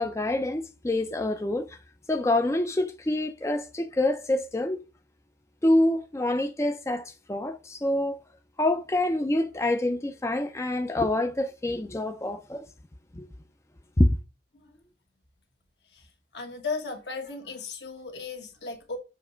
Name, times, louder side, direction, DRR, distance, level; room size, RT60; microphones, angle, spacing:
voice 1, 0.0-1.8 2.1-4.8 5.6-8.2 8.6-12.7 13.1-13.3 14.0-14.2, left 1 dB, 15° left, 0.4 m, -26 dB
voice 2, 15.9-19.0, left 4 dB, 75° left, 1.5 m, -36 dB
7.1 x 2.9 x 5.6 m
head